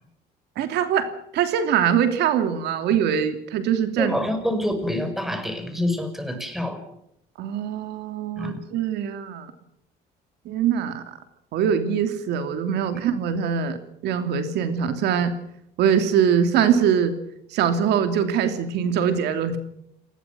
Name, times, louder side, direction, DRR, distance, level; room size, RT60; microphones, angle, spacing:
voice 1, 0.6-4.1 7.4-9.5 10.4-11.2 11.5-15.3 15.8-17.1 17.5-19.6, right 8 dB, 80° right, 8 dB, 2.9 m, -23 dB
voice 2, 4.0-6.9 8.4-8.6 12.9-13.0, left 1 dB, ahead, 8 dB, 5.8 m, -27 dB
29.0 x 19.5 x 6.2 m, 0.75 s
cardioid pair, 110°, 17 cm